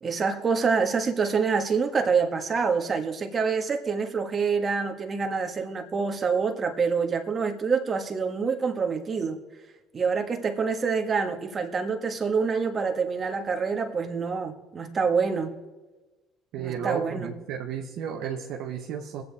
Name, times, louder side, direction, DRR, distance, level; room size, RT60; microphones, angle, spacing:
voice 1, 0.0-9.4 9.9-15.6 16.6-17.3, right 5 dB, 40° right, 4 dB, 1.7 m, -26 dB
voice 2, 16.5-19.2, right 8 dB, 70° right, 1 dB, 1.1 m, -33 dB
23.5 x 8.7 x 3.6 m, 1.2 s
hypercardioid pair, 60°, 0 cm